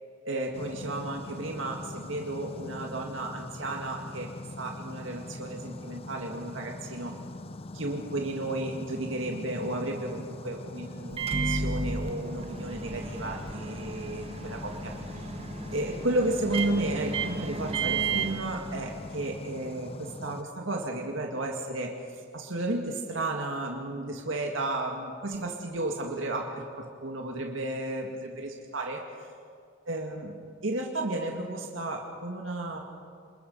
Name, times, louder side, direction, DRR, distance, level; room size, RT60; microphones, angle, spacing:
voice 1, 0.3-4.3 4.6-7.2 7.7-15.2 15.7-21.9 22.3-29.0 29.9-32.8, right 2 dB, 85° right, 1 dB, 2.1 m, -33 dB
sound 1, 0.5-20.4, left 2 dB, 30° left, 0.5 m, -42 dB
Microwave oven, 11.1-19.3, right 4 dB, 30° right, 1.2 m, -33 dB
27.0 x 21.0 x 5.5 m, 2.2 s
head